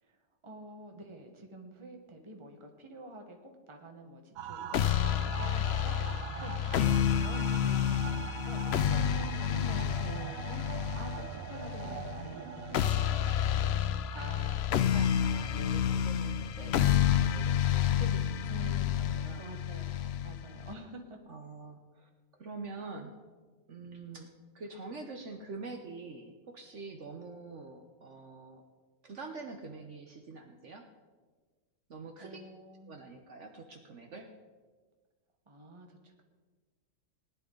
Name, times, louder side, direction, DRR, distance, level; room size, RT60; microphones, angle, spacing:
voice 1, 0.4-6.9 7.2-8.6 9.1-14.0 15.4-15.5 18.5-21.4 32.2-33.0 35.5-36.2, right 1 dB, 20° right, 3 dB, 1.2 m, -48 dB
sound 1, 4.4-13.3, right 10 dB, 75° right, 1.0 m, -43 dB
sound 2, 4.7-20.7, left 9 dB, 65° left, 0.6 m, -29 dB
voice 2, 14.1-19.5 21.3-23.1 23.7-24.3 24.5-28.6 29.0-30.8 31.9-32.4 32.9-34.3, right 3 dB, 55° right, 4 dB, 1.2 m, -45 dB
18.5 x 10.5 x 3.8 m, 1.4 s
omnidirectional pair, 1.5 m